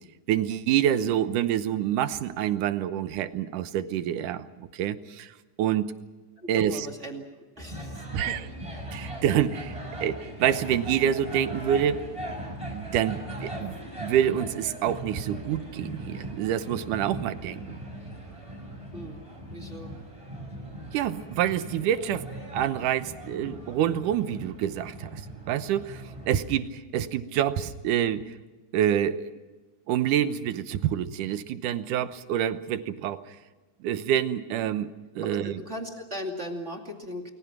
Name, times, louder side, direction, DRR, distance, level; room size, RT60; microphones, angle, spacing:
voice 1, 0.3-5.9 6.5-6.9 8.1-8.4 8.9-12.1 12.7-17.8 20.9-28.4 28.7-29.2 29.9-33.4 33.8-35.6, right 10 dB, 90° right, 12 dB, 2.5 m, -27 dB
voice 2, 6.4-7.2 7.6-8.4 18.9-19.2 19.5-19.9 35.3-37.3, equal, 25° right, 2 dB, 2.3 m, -38 dB
sound 1, 7.6-26.4, right 1 dB, 10° right, 6.2 m, -39 dB
29.5 x 21.5 x 6.0 m, 1.2 s
omnidirectional pair, 3.5 m